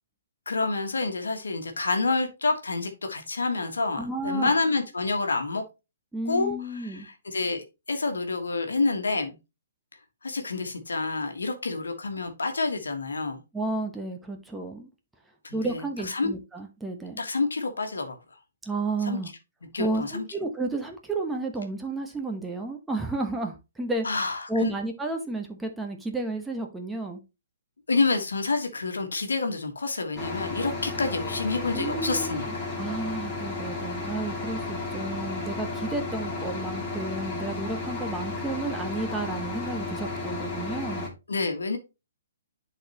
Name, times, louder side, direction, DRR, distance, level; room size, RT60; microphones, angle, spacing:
voice 1, 0.4-5.6 6.3-9.4 10.2-13.4 15.4-16.3 17.2-18.2 19.0-19.2 19.7-20.2 24.0-24.7 27.9-32.7 41.3-41.8, left 3 dB, 70° left, 1.5 m, -28 dB
voice 2, 4.0-4.5 6.1-7.1 13.5-14.9 15.5-17.2 18.6-19.3 19.8-24.1 24.5-27.2 31.7-32.4 32.8-41.0, right 2 dB, 5° right, 1.1 m, -32 dB
sound 1, 30.2-41.1, left 3 dB, 15° left, 2.5 m, -33 dB
10.5 x 4.1 x 3.0 m
figure-of-eight pair, 125°, 0 cm